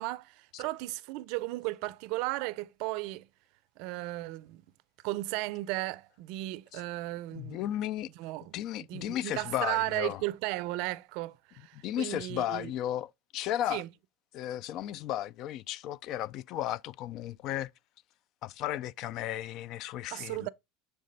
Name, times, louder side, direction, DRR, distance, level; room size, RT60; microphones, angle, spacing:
voice 1, 0.0-3.3 3.8-4.6 5.0-7.6 8.2-12.7 13.7-13.9 20.1-20.5, right 19 dB, 65° right, 0.4 m, -35 dB
voice 2, 7.3-8.1 8.5-10.2 11.8-13.8 14.3-17.7 18.4-20.5, left 12 dB, 55° left, 0.3 m, -34 dB
7.5 x 3.4 x 3.9 m
hypercardioid pair, 100°, 0 cm